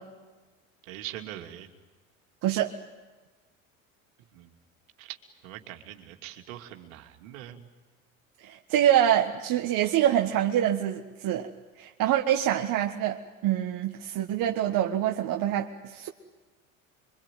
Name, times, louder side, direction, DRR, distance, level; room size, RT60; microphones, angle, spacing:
voice 1, 0.8-1.7 4.3-4.5 5.0-5.2 5.4-7.6, right 13 dB, 70° right, 4 dB, 2.8 m, -42 dB
voice 2, 8.4-11.5 11.8-16.1, right 11 dB, 50° right, 3 dB, 1.6 m, -25 dB
26.0 x 24.0 x 9.3 m, 1.3 s
hypercardioid pair, 70°, 42 cm